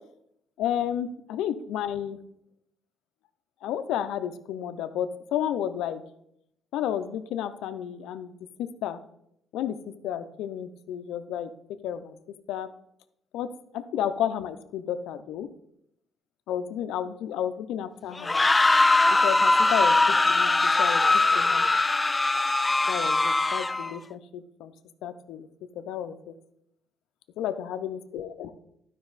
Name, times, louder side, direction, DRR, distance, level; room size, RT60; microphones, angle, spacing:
voice 1, 0.6-2.2 3.6-6.0 6.7-9.0 9.5-9.8 10.0-11.5 11.8-12.2 12.5-12.7 13.3-15.5 16.5-18.4 19.1-21.1 21.3-21.7 22.9-24.7 25.0-25.5 25.8-26.3 27.4-28.5, left 10 dB, 90° left, 9 dB, 0.6 m, -32 dB
sound 1, 18.2-23.9, left 2 dB, 20° left, 0.3 m, -21 dB
12.0 x 5.2 x 4.0 m, 0.74 s
cardioid pair, 90°, 0 cm